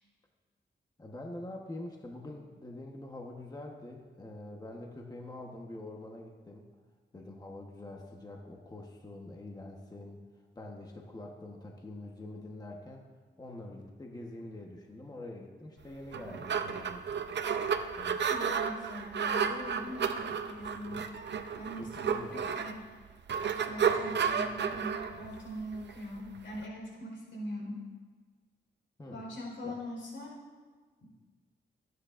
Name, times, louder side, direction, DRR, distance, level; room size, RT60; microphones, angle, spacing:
voice 1, 1.0-6.7 7.1-10.2 10.5-13.0 13.4-17.1 17.9-18.2 21.8-22.6 29.0-29.2 29.6-29.8, left 1 dB, 20° left, 0 dB, 1.1 m, -45 dB
sound 1, 15.9-26.6, right 6 dB, 65° right, 0.7 m, -32 dB
voice 2, 18.3-21.0 21.6-22.8 23.7-27.9 29.1-30.4, equal, 85° left, -1 dB, 4.3 m, -42 dB
25.5 x 9.5 x 2.5 m, 1.5 s
wide cardioid pair, 145°, 19 cm